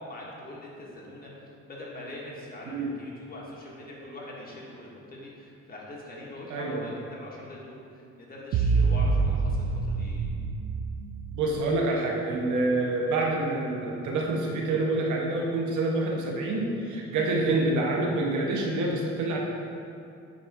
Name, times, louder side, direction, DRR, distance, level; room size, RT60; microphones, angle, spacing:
voice 1, 0.0-10.3, left 1 dB, 30° left, -4 dB, 1.6 m, -43 dB
voice 2, 6.5-6.9 11.3-19.4, right 2 dB, 80° right, -1 dB, 1.1 m, -27 dB
sound 1, 8.5-11.6, right 4 dB, 55° right, 0.5 m, -26 dB
9.1 x 3.9 x 3.6 m, 2.5 s
cardioid pair, 100°, 29 cm